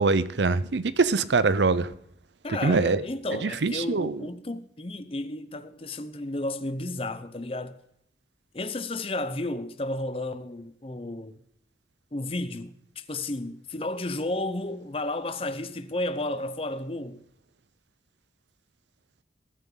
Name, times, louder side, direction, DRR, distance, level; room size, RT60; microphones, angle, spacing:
voice 1, 0.0-1.9 2.6-3.0 3.4-4.2, right 4 dB, 85° right, 0.7 m, -23 dB
voice 2, 2.4-7.8 8.5-11.4 12.1-17.2, left 2 dB, 30° left, 0.8 m, -32 dB
20.5 x 9.3 x 3.9 m
head